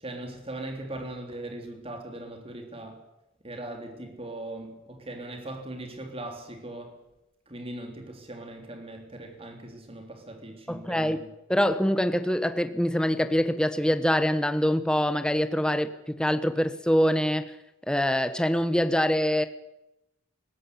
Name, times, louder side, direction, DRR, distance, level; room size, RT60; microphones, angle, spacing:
voice 1, 0.0-3.0 3.4-7.0 7.5-11.3, right 1 dB, 30° right, 3.4 m, -39 dB
voice 2, 10.7-11.2 11.5-17.5 17.9-19.5, equal, 5° left, 1.0 m, -24 dB
19.5 x 16.5 x 8.4 m
head